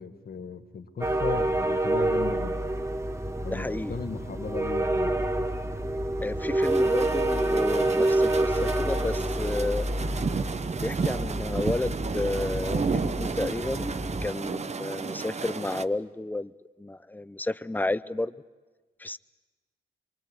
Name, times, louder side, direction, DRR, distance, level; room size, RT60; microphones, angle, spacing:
voice 1, 0.0-2.7 3.4-5.2, left 5 dB, 55° left, 7 dB, 1.9 m, -37 dB
sound 1, 1.0-14.3, right 1 dB, 15° right, 1.2 m, -28 dB
voice 2, 3.5-4.0 6.2-9.9 10.8-16.5 16.8-18.3 19.0-19.2, left 2 dB, 10° left, 15 dB, 0.7 m, -31 dB
sound 2, 6.6-15.8, right 5 dB, 35° right, 0.8 m, -33 dB
25.0 x 24.0 x 7.9 m, 1.3 s
cardioid pair, 65°, 19 cm